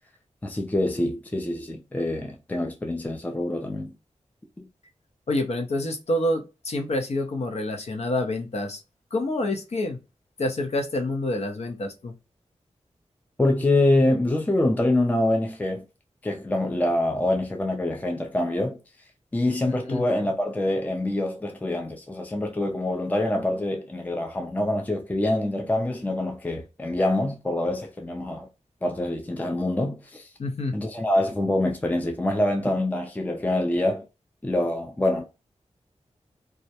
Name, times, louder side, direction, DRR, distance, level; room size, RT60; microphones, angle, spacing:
voice 1, 0.4-3.9 4.6-4.7 13.4-15.8 16.2-18.8 19.3-28.5 28.8-30.3 30.7-34.0 34.4-35.2, left 1 dB, 15° left, 0.4 m, -25 dB
voice 2, 5.3-8.8 9.1-10.0 10.4-12.1 19.7-20.0 30.4-30.8, left 1 dB, 60° left, 0.6 m, -27 dB
2.3 x 2.0 x 2.7 m
wide cardioid pair, 100°, 12 cm